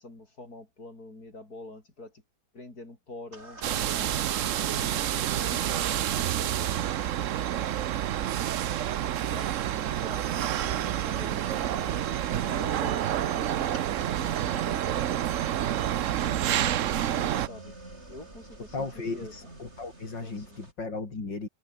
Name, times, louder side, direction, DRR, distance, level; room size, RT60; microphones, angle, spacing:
voice 1, 0.0-2.2 2.5-4.2 4.7-6.9 9.3-12.1 12.4-15.3 15.7-17.8 18.1-19.5 20.2-20.6, left 2 dB, 55° left, 6.0 m, -46 dB
sound 1, 3.3-20.7, right 2 dB, 35° right, 5.4 m, -49 dB
sound 2, 3.6-17.5, right 11 dB, 60° right, 0.9 m, -28 dB
voice 2, 18.7-21.5, left 3 dB, 80° left, 5.1 m, -36 dB
omnidirectional pair, 1.9 m